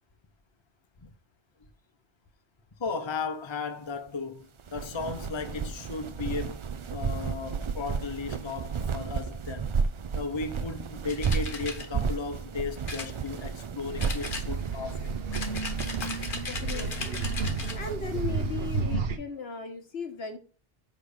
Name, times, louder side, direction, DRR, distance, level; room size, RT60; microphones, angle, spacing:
voice 1, 2.8-6.6 6.9-9.7 10.1-15.2 16.0-16.3, left 4 dB, 30° left, 0.8 m, -35 dB
sound 1, 4.6-18.8, right 6 dB, 45° right, 0.4 m, -33 dB
sound 2, 11.1-11.9 12.9-13.7 14.0-14.8 15.3-17.8, left 3 dB, 55° left, 1.3 m, -38 dB
sound 3, 13.8-19.2, right 4 dB, 70° right, 1.1 m, -32 dB
voice 2, 16.5-17.3 17.7-20.4, left 5 dB, 80° left, 1.5 m, -37 dB
5.6 x 5.1 x 6.4 m
omnidirectional pair, 1.1 m